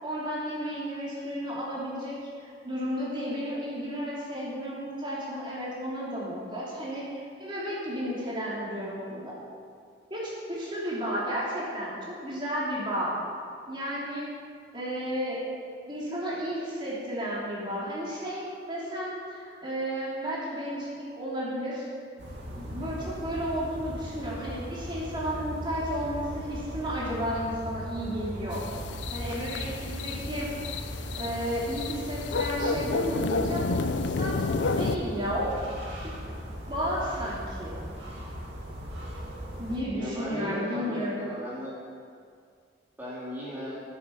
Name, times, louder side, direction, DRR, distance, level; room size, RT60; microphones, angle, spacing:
voice 1, 0.0-9.4 10.1-13.2 13.7-14.3 14.7-15.4 15.9-21.9 22.5-28.6 29.1-30.5 31.1-33.6 34.0-35.5 36.0-36.1 36.7-37.8 39.6-41.2, equal, 25° right, -7 dB, 2.9 m, -33 dB
sound 1, 22.2-39.8, equal, 80° right, 2.4 m, -38 dB
sound 2, 28.5-35.0, left 3 dB, 80° left, 0.6 m, -31 dB
voice 2, 39.9-41.7 43.0-43.8, equal, 10° right, -9 dB, 2.7 m, -36 dB
14.5 x 7.7 x 5.8 m, 2.2 s
head